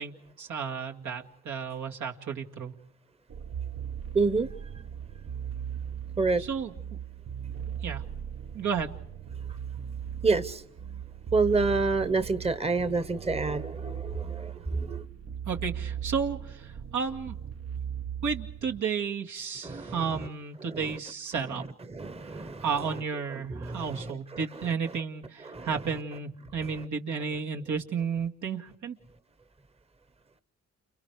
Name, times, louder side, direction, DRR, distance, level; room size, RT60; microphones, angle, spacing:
voice 1, 0.0-2.7 6.4-6.7 7.8-8.0 8.5-9.0 15.5-17.4 18.2-21.6 22.2-29.0, right 6 dB, 75° right, 2.3 m, -33 dB
sound 1, 3.3-18.8, right 8 dB, 55° right, 1.1 m, -38 dB
voice 2, 4.1-4.5 6.2-6.4 10.2-10.6 11.3-15.1 19.6-20.0 20.7-20.8 21.9-22.7 23.5-24.1 25.5-25.7, right 4 dB, 20° right, 1.1 m, -28 dB
30.0 x 29.0 x 4.9 m
cardioid pair, 90°, 30 cm